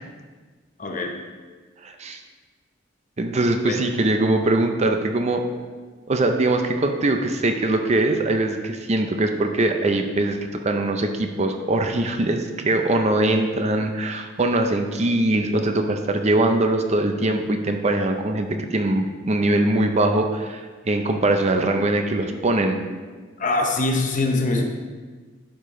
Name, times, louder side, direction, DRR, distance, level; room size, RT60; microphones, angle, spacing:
voice 1, 0.8-1.2 3.6-3.8 23.4-24.6, left 2 dB, 40° left, 2 dB, 0.8 m, -23 dB
voice 2, 1.8-2.2 3.2-5.4 6.1-22.8, right 2 dB, 35° right, 5 dB, 0.6 m, -22 dB
11.0 x 5.0 x 3.7 m, 1.4 s
head